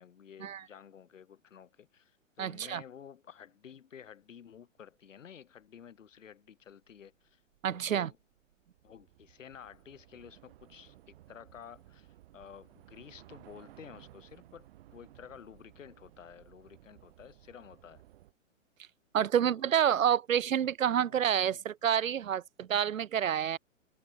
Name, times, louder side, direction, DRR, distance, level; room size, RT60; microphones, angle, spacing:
voice 1, 0.0-7.4 7.7-8.2 8.8-18.0 19.3-19.6 21.1-21.6, left 8 dB, 70° left, 3.1 m, -52 dB
voice 2, 2.4-2.8 7.6-8.1 19.1-23.6, right 9 dB, 90° right, 0.7 m, -28 dB
Train / Subway metro underground, 5.0-5.1 5.3-18.3, right 14 dB, 50° right, 3.7 m, -58 dB
hypercardioid pair, 135°, 39 cm